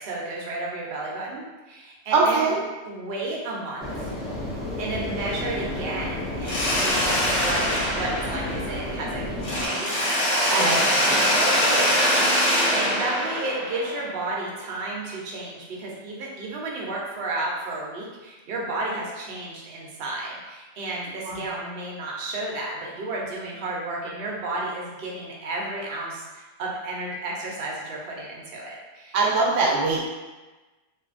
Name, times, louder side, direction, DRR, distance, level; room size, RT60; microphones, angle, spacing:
voice 1, 0.0-2.5 2.9-4.1 4.8-9.2 9.5-29.2, right 2 dB, 60° right, -3 dB, 0.8 m, -32 dB
voice 2, 2.1-2.6 10.5-11.2 21.2-21.4 29.1-30.0, right 3 dB, 85° right, -3 dB, 0.9 m, -22 dB
sound 1, 3.8-9.7, left 1 dB, ahead, 0.4 m, -32 dB
Mechanisms, 6.4-9.0 9.4-14.3, equal, 75° left, 1.0 m, -23 dB
2.6 x 2.5 x 2.4 m, 1.2 s
omnidirectional pair, 1.3 m